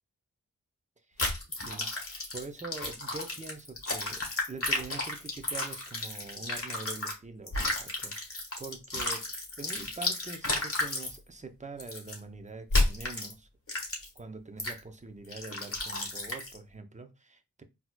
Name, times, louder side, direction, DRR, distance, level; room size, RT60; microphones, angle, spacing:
voice 1, 1.1-1.9 2.3-9.3 9.6-13.5 14.2-17.6, right 3 dB, 25° right, 0.6 m, -44 dB
sound 1, 1.2-7.1 7.5-11.1 11.8-12.2 12.7-13.3 13.7-14.2 14.6-14.8 15.3-16.6, left 2 dB, 45° left, 1.4 m, -32 dB
4.1 x 2.9 x 2.2 m
wide cardioid pair, 60°, 32 cm